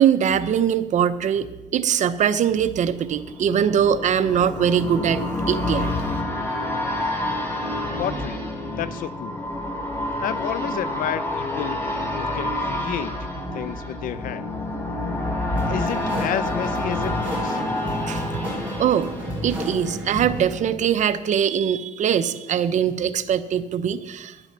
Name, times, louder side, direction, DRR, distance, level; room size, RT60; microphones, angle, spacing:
voice 1, 0.0-5.9 18.1-18.4 18.8-19.1 19.4-24.4, right 8 dB, 55° right, 12 dB, 0.7 m, -22 dB
sound 1, 2.4-20.2 20.6-20.7, left 1 dB, 15° left, 2.3 m, -28 dB
voice 2, 8.0-8.4 8.8-9.4 10.2-11.8 12.2-13.1 13.5-14.5 15.7-17.6, left 10 dB, 75° left, 16 dB, 0.6 m, -30 dB
sound 2, 15.6-20.6, equal, 10° right, 5.0 m, -31 dB
10.0 x 8.0 x 6.8 m, 1.1 s
cardioid pair, 105°, 14 cm